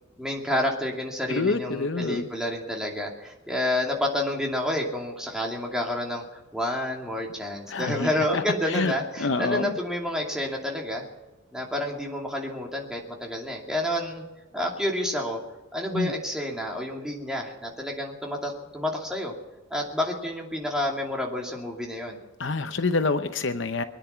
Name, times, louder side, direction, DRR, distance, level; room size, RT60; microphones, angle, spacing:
voice 1, 0.2-6.2 6.5-11.0 11.5-14.2 14.5-15.4 15.7-19.3 19.7-22.2, left 1 dB, 5° right, -1 dB, 2.6 m, -29 dB
voice 2, 1.3-2.3 7.7-8.9 9.2-9.8 15.9-16.1 22.4-23.8, left 3 dB, 60° left, 9 dB, 0.8 m, -27 dB
24.0 x 10.0 x 5.9 m, 1.1 s
head